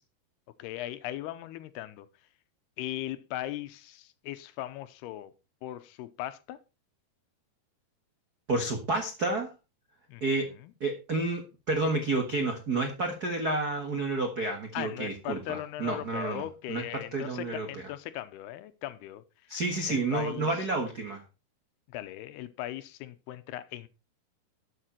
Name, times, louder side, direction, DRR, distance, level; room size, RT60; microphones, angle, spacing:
voice 1, 0.6-2.1 2.8-5.3 5.6-6.6 10.1-10.7 14.7-19.2 19.9-20.5 21.9-23.9, left 14 dB, 90° left, 2.8 m, -38 dB
voice 2, 8.5-9.5 10.2-10.5 10.8-17.8 19.5-21.2, right 2 dB, 90° right, 0.8 m, -30 dB
12.5 x 7.7 x 4.4 m
omnidirectional pair, 4.6 m